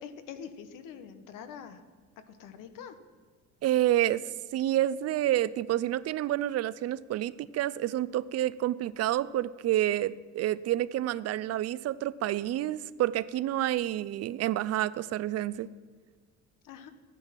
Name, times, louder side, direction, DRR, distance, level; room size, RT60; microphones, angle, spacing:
voice 1, 0.0-1.8 2.3-3.0 16.6-16.9, left 7 dB, 90° left, 10 dB, 1.2 m, -44 dB
voice 2, 3.6-15.7, right 13 dB, 55° right, 18 dB, 0.4 m, -29 dB
14.0 x 9.8 x 5.9 m, 1.5 s
cardioid pair, 165°, 31 cm